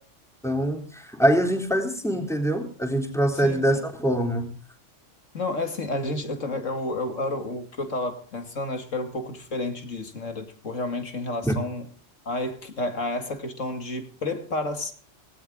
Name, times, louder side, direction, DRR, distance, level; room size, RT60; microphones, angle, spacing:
voice 1, 0.4-4.5, right 1 dB, ahead, 3.6 m, -24 dB
voice 2, 5.3-11.9 12.3-14.9, left 2 dB, 85° left, 2.7 m, -30 dB
18.0 x 17.5 x 3.8 m
omnidirectional pair, 1.3 m